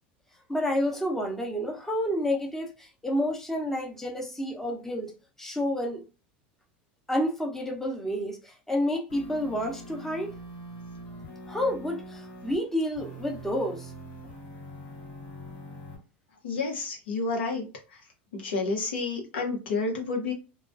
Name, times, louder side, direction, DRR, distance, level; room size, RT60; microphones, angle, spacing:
voice 1, 0.5-5.1 5.4-6.0 7.1-10.3 11.5-13.9, left 1 dB, 5° left, 0.8 m, -29 dB
sound 1, 9.1-12.6 12.9-16.0, equal, 60° left, 1.2 m, -43 dB
voice 2, 16.4-17.6 18.3-20.3, left 3 dB, 85° left, 0.9 m, -30 dB
2.3 x 2.2 x 2.5 m
hypercardioid pair, 105°, 6 cm